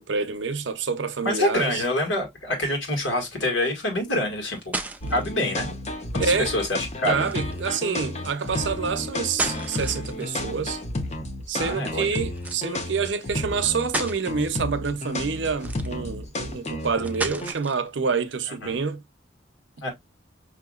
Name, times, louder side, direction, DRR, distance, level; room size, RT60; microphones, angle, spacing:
voice 1, 0.0-1.8 6.2-6.6 7.1-10.8 11.5-19.0, right 5 dB, 70° right, 0.6 m, -27 dB
voice 2, 1.2-4.7 5.1-5.7 6.1-7.3 11.6-12.0 18.6-18.8 19.8-19.9, left 1 dB, 80° left, 1.9 m, -26 dB
sound 1, 4.3-5.3 7.2-7.7 9.1-10.4 12.4-12.6 13.3-13.4 13.8-14.2 15.5-16.1 17.0-17.9, right 2 dB, 10° right, 0.4 m, -33 dB
sound 2, 5.0-17.5, left 1 dB, 35° left, 0.8 m, -32 dB
5.6 x 2.9 x 2.4 m
head